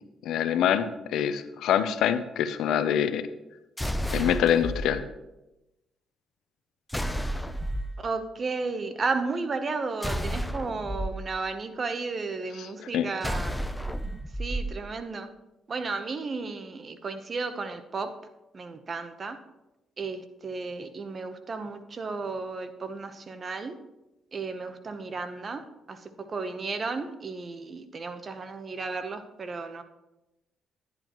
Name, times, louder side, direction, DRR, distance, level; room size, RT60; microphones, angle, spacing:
voice 1, 0.2-3.3 4.1-5.0 12.6-12.7 12.9-13.1, left 9 dB, 80° left, 12 dB, 0.6 m, -25 dB
sound 1, 3.8-4.9 6.9-7.9 10.0-11.1 13.2-14.7, equal, 5° left, 0.5 m, -31 dB
voice 2, 8.0-13.6 14.4-15.3 15.7-18.1 18.5-19.4 20.0-23.8 24.3-29.8, right 4 dB, 40° right, 9 dB, 0.9 m, -33 dB
10.5 x 10.5 x 3.0 m, 0.98 s
cardioid pair, 90°, 0 cm